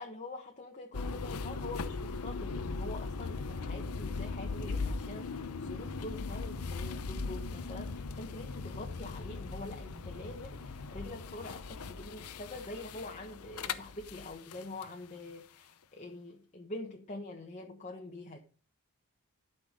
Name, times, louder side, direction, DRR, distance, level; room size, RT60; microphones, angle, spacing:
voice 1, 0.0-18.4, left 2 dB, 30° left, 2 dB, 1.0 m, -45 dB
sound 1, 0.9-14.9, left 4 dB, 85° left, 0.7 m, -39 dB
12.0 x 5.9 x 5.0 m, 0.39 s
head